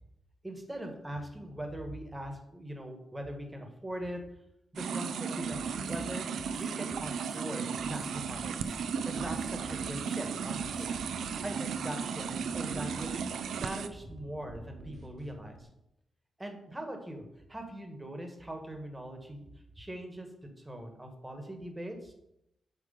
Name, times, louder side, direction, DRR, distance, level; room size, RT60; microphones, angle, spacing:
voice 1, 0.4-4.2 4.7-6.3 6.6-8.5 9.0-10.9 11.4-12.3 12.5-13.3 13.6-15.7 16.4-19.5 19.8-22.1, right 1 dB, 15° right, 4 dB, 1.4 m, -41 dB
sound 1, 4.8-13.9, right 6 dB, 80° right, 0.4 m, -35 dB
sound 2, 5.5-6.0 6.4-7.4 7.8-8.8 9.2-10.2 10.6-10.9, left 1 dB, 25° left, 0.8 m, -50 dB
sound 3, 8.6-15.6, right 1 dB, 60° right, 1.4 m, -50 dB
8.9 x 3.2 x 5.1 m, 0.81 s
cardioid pair, 95°, 0 cm